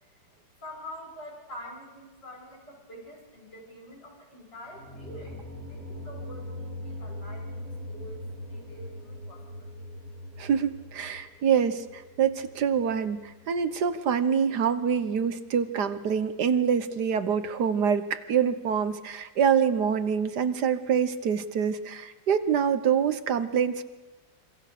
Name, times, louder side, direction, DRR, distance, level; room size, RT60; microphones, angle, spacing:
voice 1, 0.6-9.7, equal, 75° left, 0 dB, 7.0 m, -46 dB
sound 1, 4.7-13.6, left 1 dB, 45° right, 5.0 m, -41 dB
voice 2, 10.4-23.8, right 7 dB, 65° right, 11 dB, 1.6 m, -26 dB
26.5 x 25.0 x 6.7 m, 1.2 s
omnidirectional pair, 1.9 m